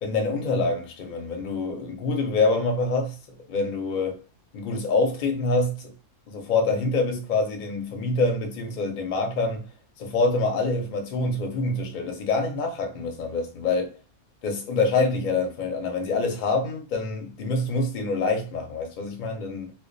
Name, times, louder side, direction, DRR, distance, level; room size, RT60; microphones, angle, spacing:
voice 1, 0.0-4.2 4.5-5.9 6.3-9.7 10.0-14.0 14.4-19.7, left 3 dB, 55° left, 0.6 m, -26 dB
2.2 x 2.2 x 2.5 m
omnidirectional pair, 1.3 m